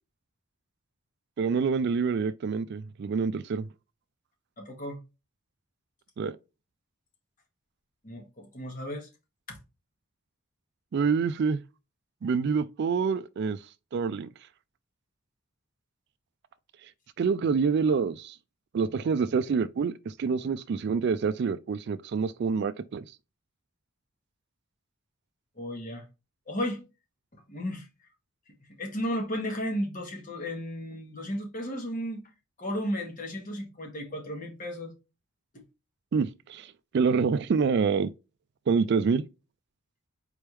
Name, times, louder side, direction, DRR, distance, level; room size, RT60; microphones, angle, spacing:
voice 1, 1.4-3.7 6.2-6.4 10.9-11.6 12.2-13.6 13.9-14.3 17.2-18.4 18.7-23.0 36.1-38.1 38.7-39.3, right 5 dB, 50° right, 0.3 m, -27 dB
voice 2, 4.6-5.0 8.0-9.1 9.5-9.6 25.6-26.0 26.5-26.8 27.5-27.9 28.8-32.3 32.6-34.9 35.5-35.6, equal, 40° left, 1.4 m, -34 dB
4.4 x 3.4 x 3.0 m
head